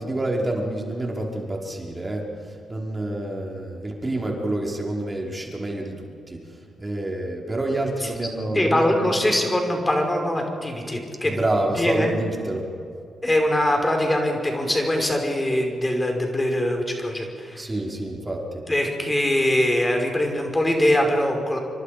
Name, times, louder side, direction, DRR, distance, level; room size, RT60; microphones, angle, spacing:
voice 1, 0.0-2.2 2.7-6.4 6.8-9.0 11.2-12.7 17.6-18.6, right 1 dB, 25° right, -1 dB, 5.2 m, -27 dB
voice 2, 8.5-11.4 11.8-12.1 13.2-17.6 18.7-21.6, left 1 dB, 20° left, 3 dB, 5.3 m, -22 dB
28.0 x 24.5 x 5.2 m, 2.4 s
hypercardioid pair, 45°, 0 cm